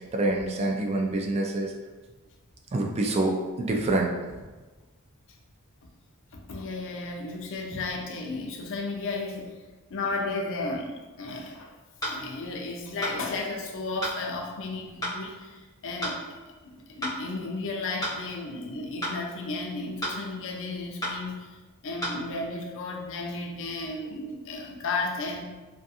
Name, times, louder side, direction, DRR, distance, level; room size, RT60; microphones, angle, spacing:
voice 1, 0.1-1.7 2.7-4.1 7.7-7.8, right 2 dB, 30° right, 1 dB, 0.3 m, -26 dB
voice 2, 6.3-9.5 9.9-11.7 12.1-16.4 16.9-21.6 21.8-25.4, left 3 dB, 60° left, 1 dB, 0.4 m, -34 dB
sound 1, 12.0-12.2 13.0-13.2 14.0-14.2 15.0-15.2 16.0-16.2 17.0-17.2 18.0-18.2 19.0-19.2 20.0-20.2 21.0-21.2 22.0-22.2, equal, 20° left, 0.7 m, -31 dB
2.4 x 2.4 x 2.6 m, 1.2 s
head